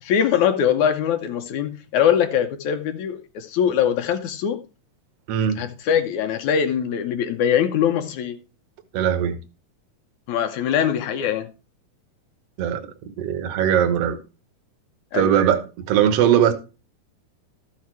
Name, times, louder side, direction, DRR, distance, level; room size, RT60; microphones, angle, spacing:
voice 1, 0.0-4.6 5.6-8.4 10.3-11.5 15.1-15.3, left 8 dB, 70° left, 2.1 m, -22 dB
voice 2, 5.3-5.6 8.9-9.4 12.6-12.8 13.2-14.2 15.1-16.5, right 9 dB, 60° right, 1.9 m, -20 dB
13.5 x 6.6 x 4.7 m
omnidirectional pair, 3.9 m